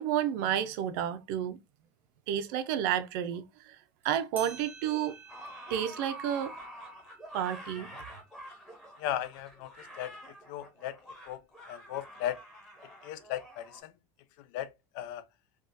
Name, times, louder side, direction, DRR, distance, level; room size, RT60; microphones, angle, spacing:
voice 1, 0.0-1.6 2.3-3.8 4.0-5.2 5.7-6.5 7.3-7.9, right 10 dB, 70° right, 0.5 m, -31 dB
sound 1, 4.0-4.1 4.4-9.4, right 6 dB, 20° right, 0.4 m, -52 dB
sound 2, 5.3-13.8, equal, 5° left, 0.8 m, -47 dB
voice 2, 9.0-9.7 10.0-10.1 10.5-10.9 11.3-11.4 11.7-12.4 13.0-13.9 14.5-14.7 14.9-15.2, left 12 dB, 70° left, 0.4 m, -36 dB
3.5 x 2.3 x 2.5 m
cardioid pair, 165°, 11 cm